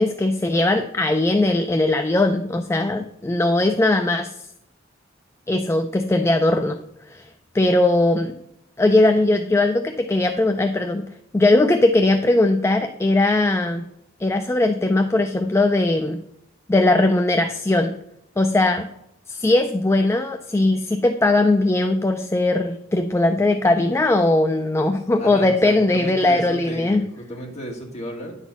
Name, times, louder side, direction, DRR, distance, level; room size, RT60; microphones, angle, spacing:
voice 1, 0.0-4.3 5.5-6.8 7.1-7.3 7.5-8.3 8.8-11.0 11.3-13.9 14.2-16.2 16.7-17.9 18.4-18.9 19.3-27.1, left 2 dB, 15° left, 6 dB, 0.4 m, -19 dB
voice 2, 25.2-28.4, equal, 35° left, 0 dB, 2.1 m, -34 dB
9.9 x 4.1 x 7.1 m, 0.80 s
head